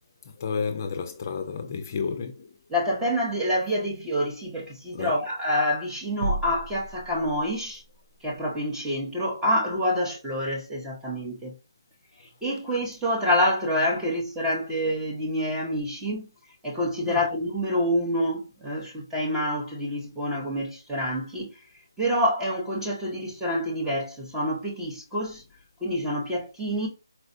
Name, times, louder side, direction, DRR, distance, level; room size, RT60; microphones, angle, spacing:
voice 1, 0.3-2.5 4.9-5.2 15.6-15.7 17.0-17.2, left 5 dB, 40° left, 0.4 m, -31 dB
voice 2, 2.7-7.8 8.2-11.5 12.4-16.3 16.6-21.5 22.0-25.4 25.8-26.9, equal, 5° right, 0.7 m, -27 dB
sound 1, 6.2-7.8, right 1 dB, 45° right, 0.5 m, -33 dB
4.2 x 2.2 x 2.5 m
figure-of-eight pair, 160°, 2 cm